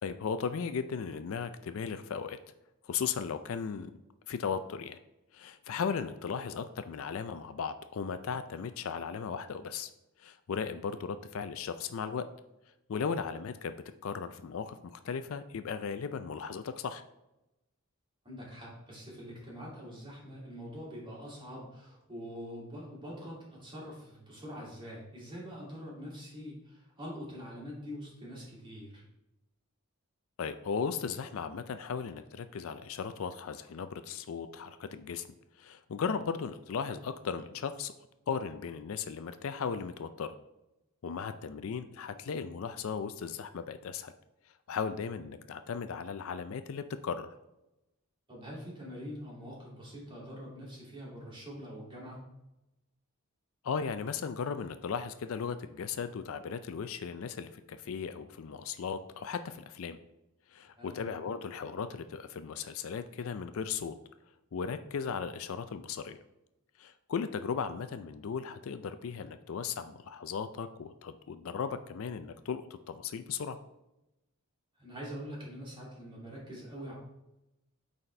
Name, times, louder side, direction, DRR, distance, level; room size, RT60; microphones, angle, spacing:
voice 1, 0.0-2.4 2.8-3.9 4.3-5.0 5.3-9.9 10.2-12.3 12.9-13.7 14.0-17.0 30.4-35.3 35.6-37.9 38.3-40.3 41.0-44.1 44.7-47.3 53.6-60.0 60.5-63.9 64.5-66.2 66.8-73.6, left 6 dB, 65° left, 11 dB, 0.4 m, -36 dB
voice 2, 18.2-29.0 48.3-52.2 60.8-61.0 74.8-76.9, equal, 25° right, -5 dB, 2.5 m, -44 dB
8.8 x 4.2 x 3.3 m, 0.91 s
head